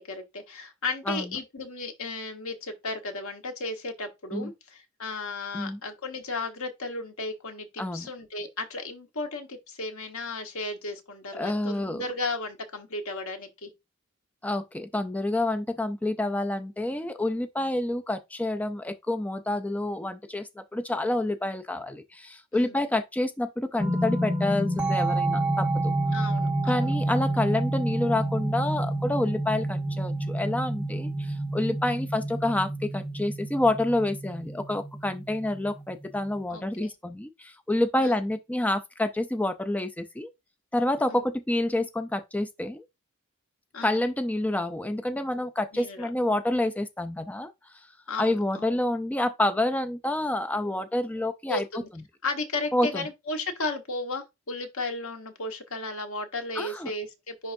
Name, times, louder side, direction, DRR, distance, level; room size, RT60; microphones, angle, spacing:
voice 1, 0.0-13.7 22.5-22.8 26.1-26.9 31.9-32.0 36.5-36.9 38.0-38.2 41.1-41.2 43.7-44.1 45.7-46.1 48.1-48.8 51.5-51.9 52.2-57.5, left 3 dB, 85° left, 1.4 m, -35 dB
voice 2, 7.8-8.1 11.4-12.1 14.4-25.9 26.7-40.3 40.7-42.8 43.8-47.5 48.2-51.6 52.7-53.1 56.6-56.9, left 1 dB, 5° left, 0.4 m, -28 dB
sound 1, 23.8-36.4, right 1 dB, 10° right, 1.0 m, -29 dB
10.5 x 3.5 x 2.6 m
head